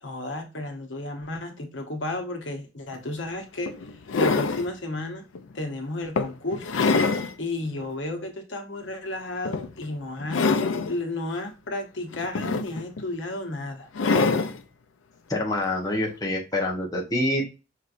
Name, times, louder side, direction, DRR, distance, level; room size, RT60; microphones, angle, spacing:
voice 1, 0.0-3.7 4.2-5.2 5.5-6.8 7.4-10.6 10.9-13.9, left 2 dB, 70° left, 1.0 m, -33 dB
sound 1, 2.9-3.0 3.7-4.7 5.3-5.5 6.2-7.3 7.8-7.9 9.4-9.8 10.2-11.0 12.1-13.0 13.9-14.6 15.9-16.0, left 4 dB, 85° left, 0.5 m, -24 dB
voice 2, 15.3-17.5, left 1 dB, 20° left, 0.9 m, -26 dB
5.6 x 3.1 x 2.5 m
head